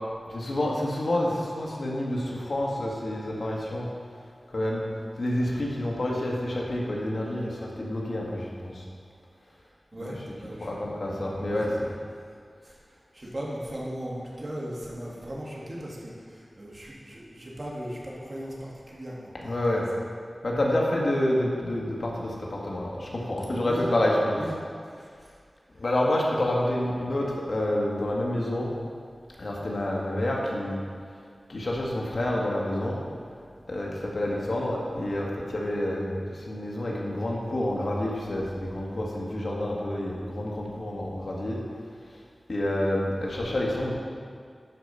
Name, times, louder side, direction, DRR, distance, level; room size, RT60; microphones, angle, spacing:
voice 1, 0.3-3.9 4.5-4.8 5.2-8.9 10.0-10.3 10.6-11.9 19.3-19.9 20.4-24.4 25.7-28.7 29.4-30.8 31.5-33.0 33.7-41.6 42.5-43.9, left 1 dB, 65° left, -3 dB, 1.8 m, -28 dB
voice 2, 9.9-10.7 11.1-11.8 12.6-19.6 23.6-23.9 24.4-24.5 25.0-25.1, equal, 45° right, -5 dB, 2.3 m, -38 dB
12.0 x 5.0 x 5.6 m, 2.2 s
wide cardioid pair, 55°, 0 cm